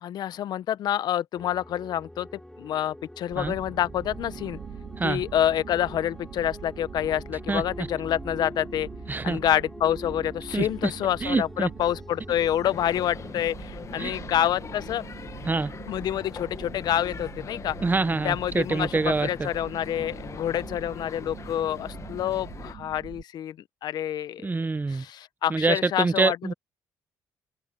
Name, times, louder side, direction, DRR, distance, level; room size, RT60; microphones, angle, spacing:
voice 1, 0.0-2.3 2.6-4.6 5.0-8.9 9.2-15.1 15.9-17.8 18.2-23.6 23.8-24.5 24.9-26.4, left 11 dB, 65° left, 1.0 m, -27 dB
sound 1, 1.3-13.3, left 1 dB, 5° left, 3.3 m, -44 dB
sound 2, 3.3-23.2, right 10 dB, 60° right, 2.4 m, -44 dB
voice 2, 7.5-7.9 9.1-9.4 10.5-10.9 11.2-11.7 14.0-14.1 15.5-15.7 17.8-19.5 24.4-25.0 25.5-26.5, right 3 dB, 25° right, 1.2 m, -26 dB
sound 3, 12.6-22.7, left 6 dB, 40° left, 1.7 m, -41 dB
supercardioid pair, 60°, 8 cm